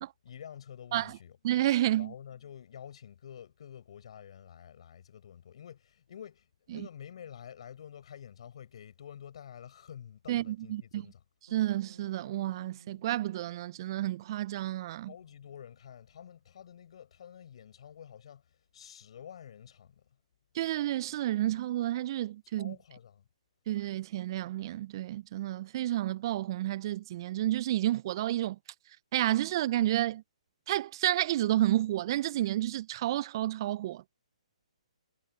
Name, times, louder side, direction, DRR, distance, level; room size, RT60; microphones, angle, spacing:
voice 1, 0.2-1.4 2.0-11.2 15.1-20.1 22.4-23.3, left 9 dB, 55° left, 6.8 m, -49 dB
voice 2, 1.4-2.1 6.7-6.8 10.3-11.0 11.5-15.1 20.5-22.8 23.7-28.6 29.1-30.2 30.7-34.0, right 14 dB, 40° right, 0.3 m, -30 dB
Bass guitar, 11.5-15.8, right 4 dB, 80° right, 3.5 m, -58 dB
hypercardioid pair, 140°, 4 cm